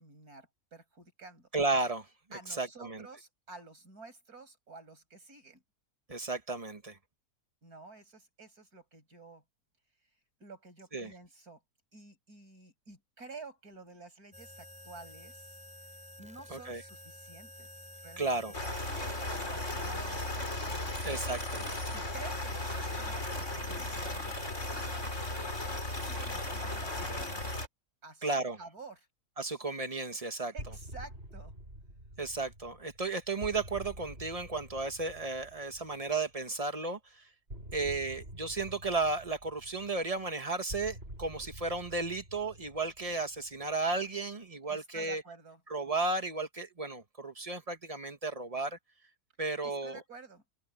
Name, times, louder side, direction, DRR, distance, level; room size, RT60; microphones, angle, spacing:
voice 1, 0.0-1.5 2.3-5.6 7.6-9.4 10.4-11.6 11.9-15.6 16.2-18.4 18.7-21.0 21.9-25.1 26.0-27.5 28.0-29.1 30.4-31.5 44.7-45.6 49.6-50.4, right 3 dB, 90° right, 7.6 m, -51 dB
voice 2, 1.5-2.1 2.5-3.1 6.1-7.0 10.9-11.1 16.5-16.8 18.2-18.5 21.0-21.6 28.2-28.6 29.4-30.5 32.2-37.2 37.7-45.2 45.7-48.8 49.4-50.0, right 3 dB, 25° right, 1.8 m, -34 dB
sound 1, 14.3-27.6, left 1 dB, 5° right, 4.9 m, -50 dB
sound 2, 18.5-27.7, left 1 dB, 50° left, 6.5 m, -36 dB
sound 3, 30.6-36.3 37.5-43.8, right 1 dB, 40° right, 8.3 m, -48 dB
omnidirectional pair, 1.6 m